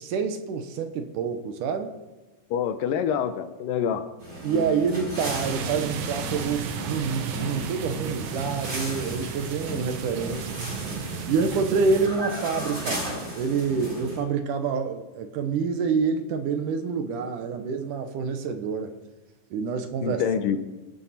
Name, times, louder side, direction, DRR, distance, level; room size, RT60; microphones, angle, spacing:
voice 1, 0.0-1.9 4.4-10.6 11.3-13.0 13.4-18.9 19.5-20.2, right 5 dB, 70° right, 7 dB, 2.3 m, -27 dB
voice 2, 2.5-4.1 20.0-20.6, left 8 dB, 75° left, 10 dB, 2.3 m, -26 dB
sound 1, 4.2-14.2, right 1 dB, 20° right, 6.9 m, -35 dB
sound 2, 5.2-12.1, right 6 dB, 90° right, 3.1 m, -34 dB
26.0 x 9.6 x 4.3 m, 1.1 s
omnidirectional pair, 4.1 m